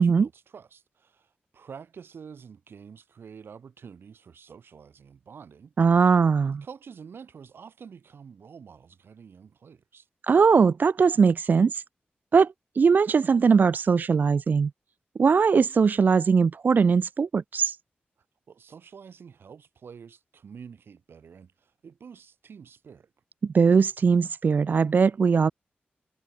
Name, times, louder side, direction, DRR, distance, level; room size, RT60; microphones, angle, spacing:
voice 1, 0.0-5.7 6.4-10.1 18.5-23.1, right 6 dB, 80° right, 7.3 m, -47 dB
voice 2, 5.8-6.6 10.2-11.8 12.3-14.7 15.2-17.8 23.4-25.5, right 5 dB, 55° right, 0.4 m, -20 dB
wide cardioid pair, 110°, 4 cm